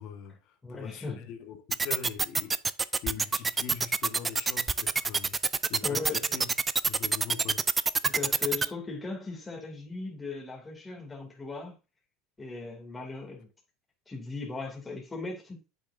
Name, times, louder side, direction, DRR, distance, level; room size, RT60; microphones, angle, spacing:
voice 1, 0.0-2.5 2.8-5.4 5.7-6.5 6.8-7.7, left 8 dB, 60° left, 1.5 m, -42 dB
voice 2, 0.6-1.3 5.8-6.4 8.0-11.7 12.4-13.5 14.1-15.6, left 4 dB, 15° left, 2.6 m, -38 dB
sound 1, 1.7-8.7, right 4 dB, 20° right, 0.4 m, -26 dB
8.5 x 6.3 x 2.6 m
supercardioid pair, 100°, 0 cm